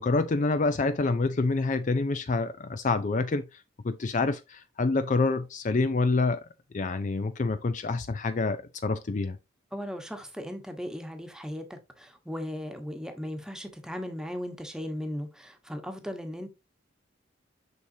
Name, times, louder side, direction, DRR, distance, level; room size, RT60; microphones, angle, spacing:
voice 1, 0.0-6.4 6.7-9.4, left 3 dB, 40° left, 0.4 m, -27 dB
voice 2, 9.7-16.5, equal, 5° right, 1.2 m, -37 dB
6.8 x 6.2 x 2.7 m
head